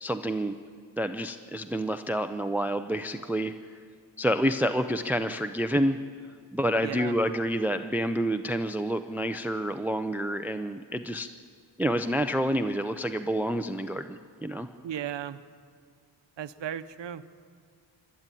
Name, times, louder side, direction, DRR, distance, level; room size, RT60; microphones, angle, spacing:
voice 1, 0.0-0.5 1.0-3.5 4.2-6.0 6.5-11.3 11.8-14.7, equal, 5° right, 9 dB, 0.5 m, -28 dB
voice 2, 6.8-7.2 14.8-15.4 16.4-17.4, right 10 dB, 65° right, 11 dB, 0.9 m, -35 dB
26.0 x 12.5 x 9.0 m, 2.1 s
wide cardioid pair, 145°, 46 cm